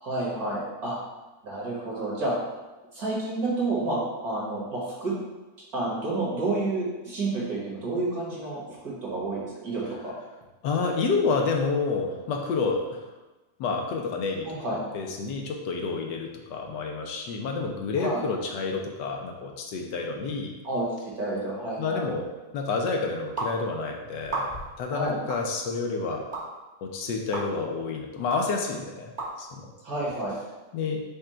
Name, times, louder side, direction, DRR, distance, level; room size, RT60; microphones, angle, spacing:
voice 1, 0.0-1.0 1.4-2.3 2.9-5.1 5.7-8.6 8.8-10.1 14.4-14.8 18.0-18.2 20.6-22.0 24.9-25.2 29.8-30.3, right 2 dB, 60° right, -6 dB, 1.9 m, -30 dB
voice 2, 10.6-13.0 13.6-20.5 21.8-26.3 26.8-29.1 29.4-29.7 30.7-31.0, left 4 dB, 80° left, 2 dB, 1.3 m, -29 dB
sound 1, 23.4-23.5 24.2-24.7 25.3-25.4 26.3-26.4 27.3-27.5 28.3-28.4 29.2-29.3, right 2 dB, 40° right, 0.8 m, -31 dB
5.0 x 2.3 x 4.3 m, 1.1 s
omnidirectional pair, 1.9 m